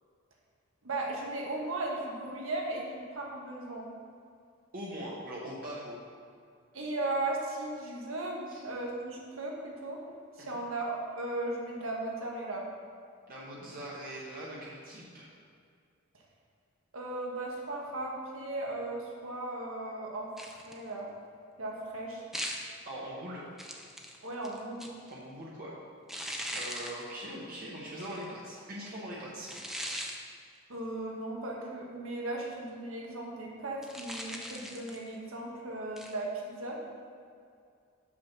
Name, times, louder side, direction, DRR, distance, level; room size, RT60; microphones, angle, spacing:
voice 1, 0.8-3.9 6.7-10.0 10.4-12.7 16.9-20.3 20.7-21.1 21.6-22.2 24.2-24.9 30.7-36.8, right 2 dB, 80° right, -2 dB, 1.5 m, -36 dB
voice 2, 4.7-6.0 8.5-8.6 10.4-10.6 13.3-15.3 22.8-23.4 25.1-25.7 26.1-29.5, equal, 45° right, -5 dB, 1.0 m, -42 dB
sound 1, 20.4-20.8 22.3-22.7 23.6-25.1 26.1-27.0 28.0-28.2 29.5-30.2 33.8-35.1 36.0-36.2, equal, ahead, 0.6 m, -39 dB
6.1 x 5.8 x 6.0 m, 2.3 s
head